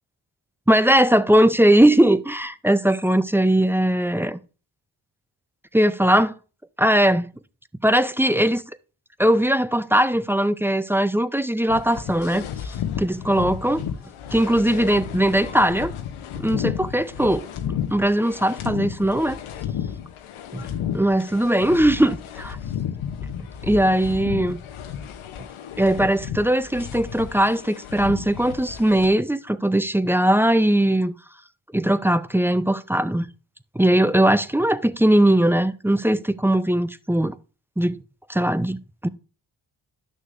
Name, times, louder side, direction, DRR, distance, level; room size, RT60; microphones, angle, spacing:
voice 1, 0.7-4.4 5.7-6.3 6.8-7.3 7.8-8.6 9.2-13.8 14.3-15.9 16.4-17.5 17.9-19.4 20.5-20.7 20.9-22.6 23.6-24.6 25.8-31.1 31.7-33.3 33.8-37.4 37.8-38.0 38.3-39.1, right 1 dB, 5° right, 0.4 m, -20 dB
sound 1, 11.7-29.1, left 9 dB, 85° left, 0.8 m, -33 dB
11.0 x 6.4 x 2.5 m
supercardioid pair, 45°, 48 cm